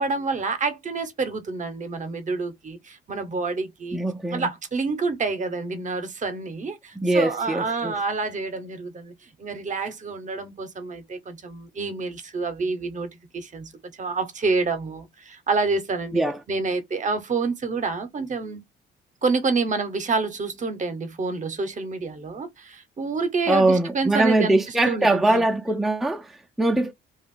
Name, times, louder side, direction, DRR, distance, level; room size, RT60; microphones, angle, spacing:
voice 1, 0.0-4.0 4.3-16.2 16.5-18.6 19.2-24.6 24.9-25.4, right 4 dB, 40° right, 0.8 m, -28 dB
voice 2, 3.9-4.5 7.0-8.0 16.1-16.4 23.5-26.9, right 2 dB, ahead, 0.4 m, -22 dB
2.4 x 2.2 x 3.6 m
cardioid pair, 90°, 20 cm